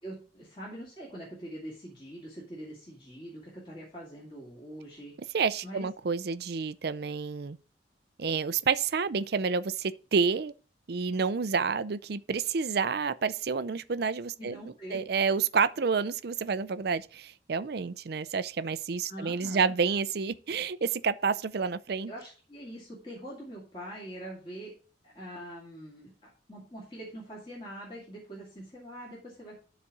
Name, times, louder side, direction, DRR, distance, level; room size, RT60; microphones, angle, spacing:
voice 1, 0.0-5.1 5.6-5.9 14.4-15.0 19.1-19.7 22.1-24.7 25.0-26.1 26.5-29.6, right 1 dB, 25° left, 2.6 m, -43 dB
voice 2, 5.3-7.6 8.2-10.5 10.9-22.1, right 5 dB, 55° right, 0.5 m, -29 dB
12.5 x 4.2 x 4.7 m
head